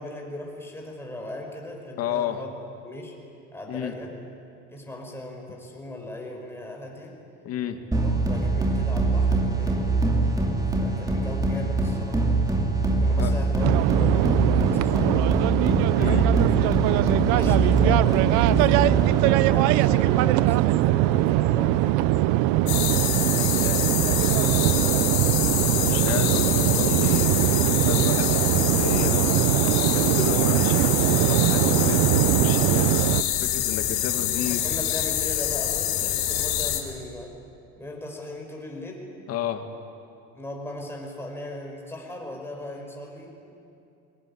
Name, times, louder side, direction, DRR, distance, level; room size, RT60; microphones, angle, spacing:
voice 1, 0.0-2.5 2.8-3.2 3.5-4.1 4.7-7.2 7.7-10.0 10.8-12.2 13.0-15.5 16.1-22.1 23.3-25.5 34.4-37.3 37.8-39.1 40.3-43.5, left 1 dB, 10° left, 0 dB, 5.4 m, -38 dB
voice 2, 2.0-2.4 3.7-3.9 7.4-7.8 13.2-13.3 16.0-16.3 25.8-29.4 29.9-34.6 39.3-39.6, left 9 dB, 55° left, 6 dB, 2.1 m, -32 dB
sound 1, 7.9-19.4, right 2 dB, 10° right, 2.7 m, -24 dB
sound 2, 13.6-33.2, right 15 dB, 75° right, 0.7 m, -21 dB
sound 3, 22.7-36.8, left 12 dB, 80° left, 3.2 m, -26 dB
22.5 x 19.0 x 10.0 m, 2.6 s
cardioid pair, 135°, 29 cm